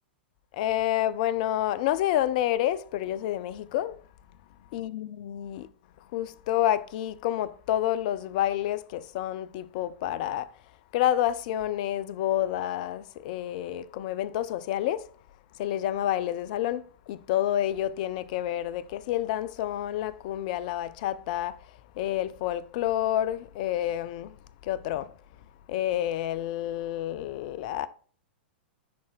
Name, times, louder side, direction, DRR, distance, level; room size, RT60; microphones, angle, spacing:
voice 1, 0.5-4.0 4.7-5.7 6.1-10.5 10.9-15.1 15.6-21.6 22.0-24.3 24.6-25.1 25.7-27.9, left 12 dB, 50° left, 0.4 m, -29 dB
10.0 x 4.2 x 2.3 m
figure-of-eight pair, 100°, 6 cm